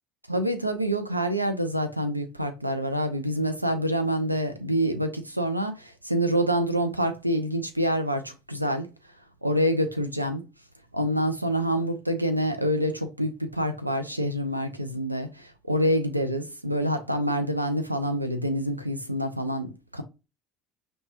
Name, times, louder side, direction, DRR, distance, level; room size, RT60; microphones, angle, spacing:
voice 1, 0.3-8.9 9.4-10.4 10.9-20.0, equal, 90° right, 0.4 m, -27 dB
5.3 x 2.2 x 2.8 m
figure-of-eight pair, 60°, 0 cm